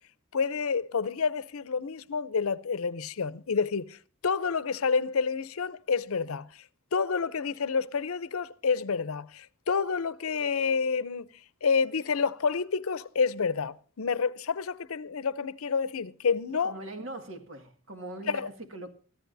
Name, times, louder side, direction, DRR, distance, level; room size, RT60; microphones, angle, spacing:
voice 1, 0.3-4.0 4.2-6.5 6.9-11.3 11.6-16.7 18.3-18.5, left 5 dB, 85° left, 0.6 m, -29 dB
voice 2, 16.6-18.9, right 2 dB, 65° right, 1.9 m, -41 dB
25.0 x 14.0 x 2.6 m
head